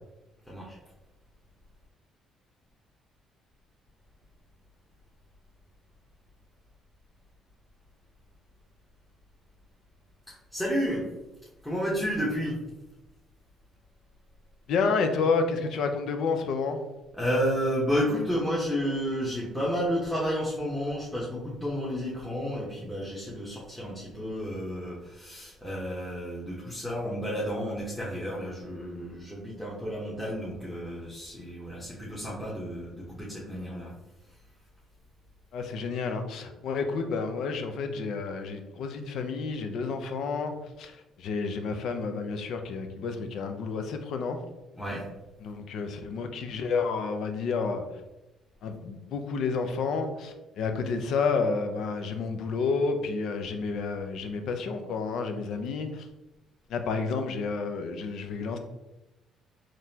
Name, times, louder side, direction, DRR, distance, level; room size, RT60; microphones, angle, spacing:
voice 1, 0.5-0.8 10.3-11.1 11.6-12.6 17.1-33.9 34.3-34.4 44.7-45.1, equal, 5° left, -7 dB, 1.0 m, -31 dB
voice 2, 14.7-16.9 35.5-44.4 45.4-47.8 48.6-56.1 56.7-58.6, left 4 dB, 70° left, 7 dB, 0.5 m, -30 dB
4.0 x 3.1 x 2.8 m, 1.0 s
cardioid pair, 105°, 0 cm